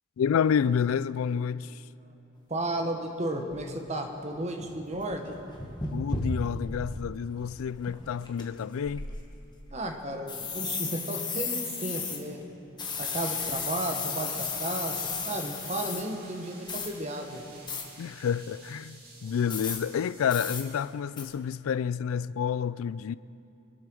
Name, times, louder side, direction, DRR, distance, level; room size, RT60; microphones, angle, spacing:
voice 1, 0.2-1.7 5.9-9.1 18.0-23.1, left 7 dB, 90° left, 0.3 m, -29 dB
voice 2, 2.5-5.4 9.7-12.4 13.0-17.4, right 1 dB, 35° right, 1.3 m, -33 dB
sound 1, 2.7-2.8 3.5-3.7 4.2-4.3 4.6-7.0 7.4-7.5 7.8-8.4 8.8-9.6 10.3-12.2 12.8-16.0 16.7-16.9 17.7-17.8 19.5-19.8 20.3-20.6 21.2-21.3, left 4 dB, 20° left, 1.3 m, -34 dB
sound 2, 13.8-21.0, right 2 dB, 50° right, 2.5 m, -52 dB
23.5 x 8.5 x 6.3 m
head